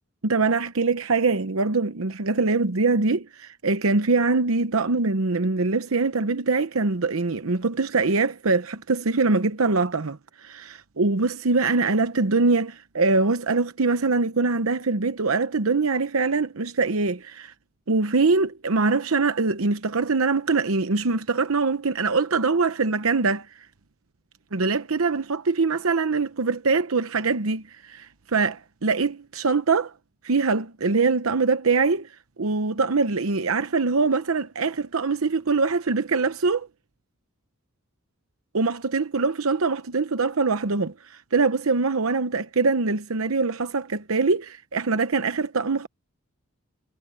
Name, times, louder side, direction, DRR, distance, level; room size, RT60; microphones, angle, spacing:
voice 1, 0.2-17.5 17.9-23.5 24.5-29.9 30.2-32.1 32.4-36.7 38.5-45.9, right 4 dB, 90° right, 0.9 m, -23 dB
head